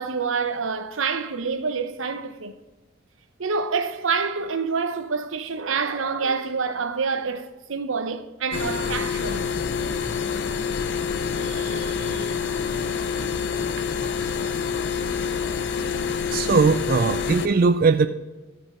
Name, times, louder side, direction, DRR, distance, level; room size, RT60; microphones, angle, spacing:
voice 1, 0.0-2.5 3.4-9.5 11.3-12.4 13.8-13.9, right 5 dB, 80° right, 0.8 m, -27 dB
sound 1, 8.5-17.5, left 6 dB, 60° left, 0.6 m, -27 dB
voice 2, 16.3-18.1, right 4 dB, 45° right, 0.4 m, -19 dB
13.5 x 5.2 x 4.9 m
head